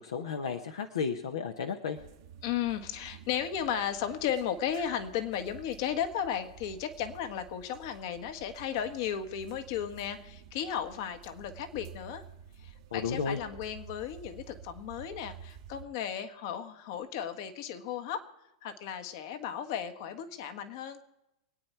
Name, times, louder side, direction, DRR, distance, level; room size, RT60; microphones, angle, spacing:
voice 1, 0.0-2.0 12.9-13.4, left 6 dB, 80° left, 4 dB, 1.0 m, -33 dB
sound 1, 1.9-15.8, right 8 dB, 60° right, 1.2 m, -51 dB
voice 2, 2.4-12.2 12.6-18.2 18.6-21.0, left 9 dB, 60° left, 8 dB, 1.4 m, -35 dB
24.0 x 9.1 x 4.5 m, 0.90 s
hypercardioid pair, 100°, 2 cm